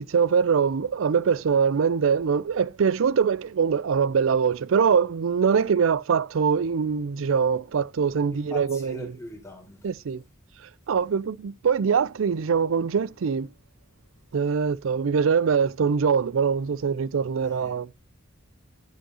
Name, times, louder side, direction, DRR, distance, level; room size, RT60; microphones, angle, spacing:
voice 1, 0.0-9.0 9.8-10.2 10.9-13.5 14.3-17.9, right 6 dB, 80° right, 0.4 m, -23 dB
voice 2, 8.3-9.9 17.4-17.8, left 2 dB, 15° left, 4.3 m, -42 dB
11.5 x 10.0 x 2.8 m
head